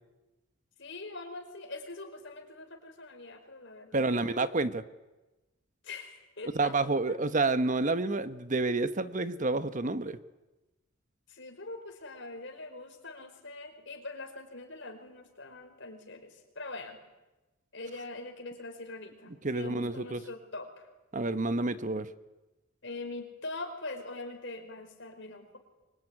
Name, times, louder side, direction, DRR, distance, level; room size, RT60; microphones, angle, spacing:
voice 1, 0.8-4.4 5.8-6.7 7.1-7.2 11.3-17.0 17.7-20.9 22.8-25.6, left 2 dB, 60° left, 4 dB, 5.1 m, -43 dB
voice 2, 3.9-4.8 6.5-10.2 19.4-20.2 21.1-22.1, right 3 dB, 40° right, 12 dB, 1.0 m, -29 dB
25.0 x 23.5 x 9.9 m, 1.1 s
head